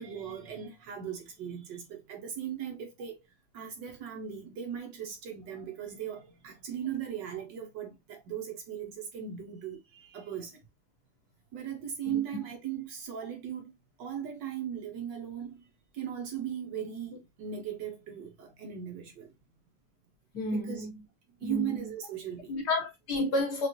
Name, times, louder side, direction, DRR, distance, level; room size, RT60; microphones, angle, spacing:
voice 1, 0.0-3.2 3.5-10.6 11.5-13.7 14.0-15.6 15.9-19.3 20.5-20.9 21.4-22.5 23.2-23.3, right 9 dB, 65° right, 1.3 m, -38 dB
voice 2, 20.3-20.9 21.4-21.7 22.5-23.7, left 2 dB, 55° left, 1.3 m, -30 dB
5.1 x 2.4 x 2.8 m
omnidirectional pair, 2.4 m